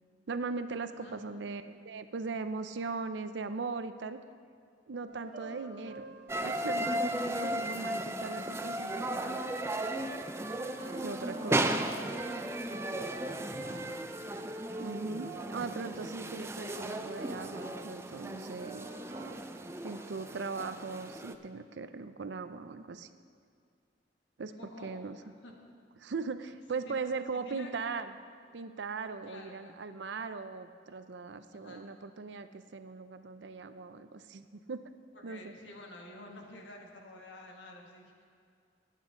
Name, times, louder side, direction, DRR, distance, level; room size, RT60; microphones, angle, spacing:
voice 1, 0.3-4.2 4.9-6.1 6.4-9.4 11.0-11.8 14.8-18.9 19.8-23.1 24.4-24.5 24.8-25.2 26.0-28.1 28.5-34.8 35.2-35.5, right 4 dB, 75° right, 10 dB, 0.5 m, -39 dB
sound 1, 5.1-7.6 8.3-8.5 8.8-14.4 14.7-15.9 16.2-16.3 16.7-18.3 18.6-19.3, right 4 dB, 50° right, 2.5 m, -48 dB
sound 2, 6.3-21.3, right 1 dB, 15° right, 0.4 m, -35 dB
voice 2, 13.2-13.7 19.8-20.3 24.5-25.5 26.7-27.0 27.3-27.7 29.2-29.7 31.5-31.9 35.1-38.2, left 1 dB, 85° left, 1 dB, 1.7 m, -50 dB
19.5 x 8.3 x 3.7 m, 2.3 s
head